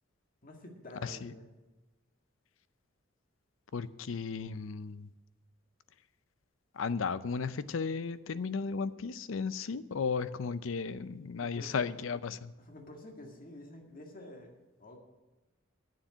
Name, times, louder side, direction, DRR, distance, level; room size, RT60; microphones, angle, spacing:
voice 1, 0.4-1.5 11.4-11.8 12.6-15.0, left 1 dB, 45° left, 2 dB, 1.8 m, -49 dB
voice 2, 1.0-1.3 3.7-5.1 6.7-12.5, left 5 dB, 85° left, 15 dB, 0.5 m, -35 dB
9.2 x 7.3 x 8.9 m, 1.1 s
head